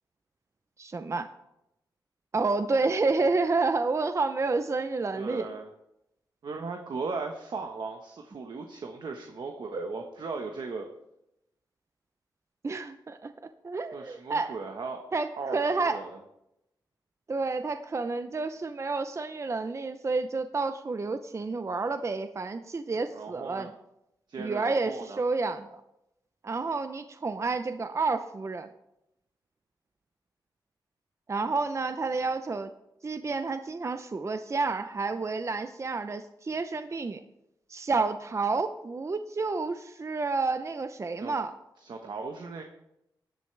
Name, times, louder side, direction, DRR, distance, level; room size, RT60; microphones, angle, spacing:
voice 1, 0.8-1.3 2.3-5.5 12.6-13.3 13.6-14.5 15.1-16.0 17.3-23.7 24.4-25.8 26.4-28.7 31.3-32.7 33.0-37.2 37.7-41.6, right 3 dB, 35° right, 9 dB, 0.7 m, -30 dB
voice 2, 5.1-5.7 6.4-10.9 13.9-15.0 15.4-16.2 23.1-23.7 24.3-25.2 41.2-41.3 41.8-42.6, right 4 dB, 65° right, 3 dB, 1.3 m, -37 dB
16.5 x 10.5 x 3.4 m, 0.84 s
cardioid pair, 75°, 8 cm